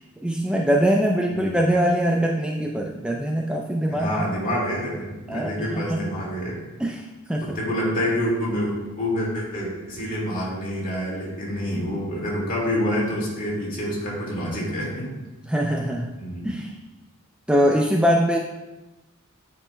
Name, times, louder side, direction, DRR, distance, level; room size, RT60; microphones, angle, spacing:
voice 1, 0.2-4.1 5.3-6.1 6.8-7.6 15.5-16.1 16.4-16.8 17.5-18.4, equal, 5° right, 0 dB, 0.3 m, -22 dB
voice 2, 1.3-1.6 3.9-6.6 7.4-15.1 16.2-16.5, equal, 40° left, -4 dB, 2.0 m, -27 dB
10.0 x 5.1 x 2.2 m, 1.1 s
head